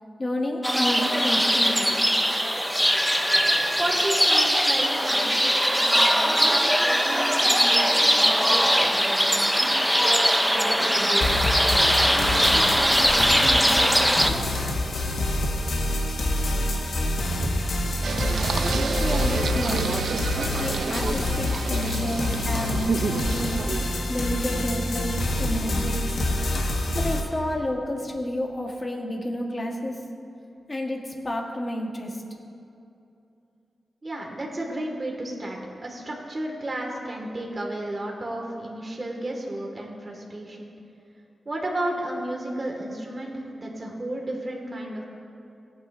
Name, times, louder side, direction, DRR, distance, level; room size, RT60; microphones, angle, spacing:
voice 1, 0.2-1.9 18.5-19.9 20.4-26.0 26.9-29.9 30.7-31.0 31.2-32.1, left 1 dB, 25° left, 1 dB, 1.3 m, -30 dB
sound 1, 0.6-14.3, equal, ahead, 0.5 m, -21 dB
voice 2, 3.8-5.3 5.7-9.9 10.4-11.3 12.0-14.5 34.0-40.7 41.5-45.0, right 1 dB, 30° right, -1 dB, 1.8 m, -33 dB
sound 2, 11.2-27.2, left 1 dB, 85° left, 1.3 m, -27 dB
Singing, 18.0-23.8, right 5 dB, 70° right, 0.4 m, -30 dB
20.5 x 9.3 x 2.6 m, 2.7 s
wide cardioid pair, 160°, 0 cm